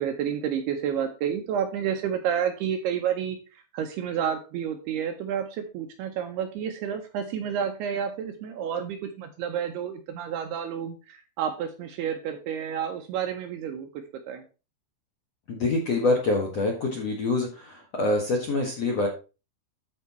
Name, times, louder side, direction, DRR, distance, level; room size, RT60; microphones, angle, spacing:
voice 1, 0.0-13.9 14.3-14.4, right 8 dB, 75° right, 6 dB, 2.5 m, -30 dB
voice 2, 15.5-19.1, left 2 dB, 60° left, 1 dB, 1.7 m, -25 dB
13.0 x 4.5 x 4.2 m, 0.32 s
omnidirectional pair, 5.3 m